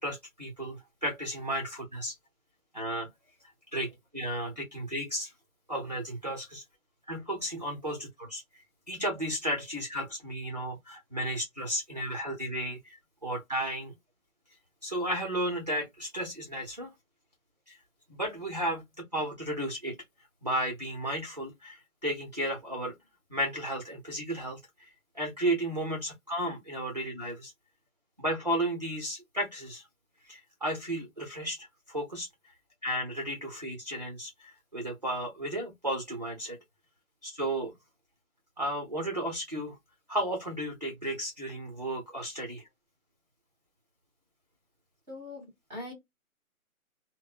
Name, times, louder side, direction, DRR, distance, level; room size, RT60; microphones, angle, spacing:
voice 1, 0.0-2.1 2.7-3.1 3.7-5.3 5.7-6.6 7.1-13.9 14.8-16.9 17.7-17.8 18.2-18.8 19.1-19.9 20.4-22.9 23.3-24.9 25.1-27.5 28.2-29.8 30.2-32.5 32.8-36.6 37.2-37.7 38.6-39.8 40.1-42.7, right 1 dB, 30° right, 0.5 m, -34 dB
voice 2, 45.1-45.9, left 2 dB, 5° right, 1.1 m, -42 dB
3.8 x 2.0 x 2.4 m
hypercardioid pair, 170°, 43 cm